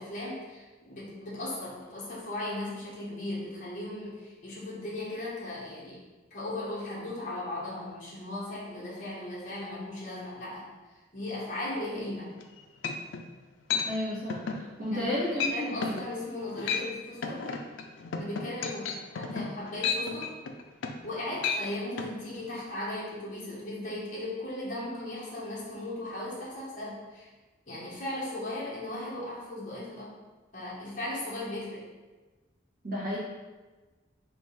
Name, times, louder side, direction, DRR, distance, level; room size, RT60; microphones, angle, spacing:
voice 1, 0.0-6.0 6.3-10.7 11.1-12.3 14.9-17.5 18.1-20.3 21.0-27.3 27.7-30.2 30.5-31.9, left 1 dB, 40° left, -7 dB, 1.3 m, -37 dB
sound 1, 12.4-12.5 12.8-13.3 13.7-13.9 14.3-14.6 15.0-15.1 15.4-15.6 15.8-16.0 16.5-16.9 17.2-21.1 21.4-21.6 22.0-22.1, left 5 dB, 70° left, 0.4 m, -32 dB
voice 2, 13.8-14.4 14.8-16.0 32.8-33.2, left 1 dB, 45° right, -7 dB, 1.4 m, -32 dB
3.7 x 2.7 x 4.1 m, 1.2 s
head